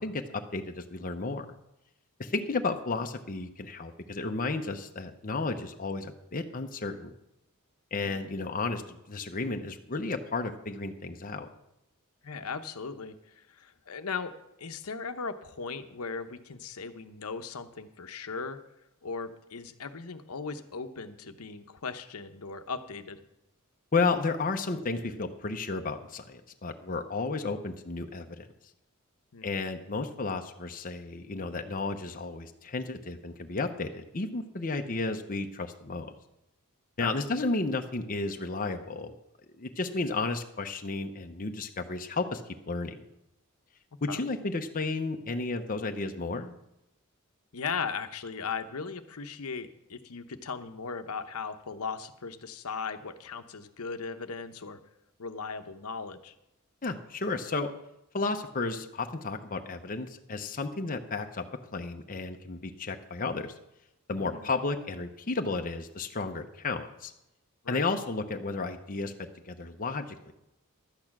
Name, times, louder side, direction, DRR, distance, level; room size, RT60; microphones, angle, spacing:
voice 1, 0.0-1.5 2.2-7.1 7.9-11.5 23.9-28.5 29.4-36.1 37.0-39.1 39.6-42.4 42.7-43.0 44.0-46.5 56.8-57.7 58.1-61.4 61.7-63.5 64.1-67.1 67.7-70.3, left 3 dB, 40° left, 4 dB, 0.8 m, -33 dB
voice 2, 12.2-18.6 19.0-23.2 29.3-29.5 37.0-37.2 44.1-44.2 47.5-54.8 55.2-56.3 64.2-64.5 67.6-67.9, left 5 dB, 85° left, 9 dB, 0.9 m, -38 dB
12.0 x 8.8 x 5.9 m, 0.86 s
head